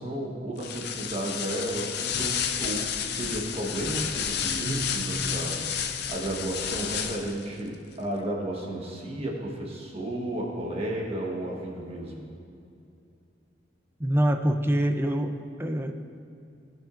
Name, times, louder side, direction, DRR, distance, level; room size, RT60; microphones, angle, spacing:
voice 1, 0.0-12.2, right 1 dB, 35° right, -2 dB, 1.2 m, -33 dB
sound 1, 0.6-7.4, left 8 dB, 65° left, 0.5 m, -31 dB
Guitar, 4.4-5.7, right 1 dB, 40° left, 1.5 m, -35 dB
voice 2, 14.0-15.9, equal, 15° right, 5 dB, 0.5 m, -25 dB
17.0 x 6.1 x 2.5 m, 2.5 s
head